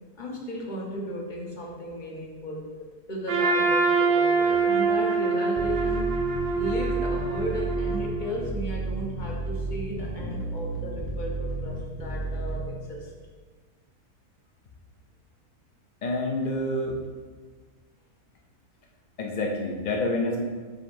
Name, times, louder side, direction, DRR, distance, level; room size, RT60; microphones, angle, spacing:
voice 1, 0.1-2.7 3.1-6.2 6.6-13.1, equal, 35° left, -2 dB, 1.0 m, -35 dB
Trumpet, 3.3-8.4, right 4 dB, 75° right, 1.3 m, -25 dB
sound 1, 5.6-12.6, right 2 dB, 10° right, 0.7 m, -32 dB
voice 2, 16.0-17.0 19.2-20.5, left 2 dB, 70° left, 0 dB, 0.4 m, -27 dB
7.5 x 5.2 x 2.6 m, 1.5 s
omnidirectional pair, 1.6 m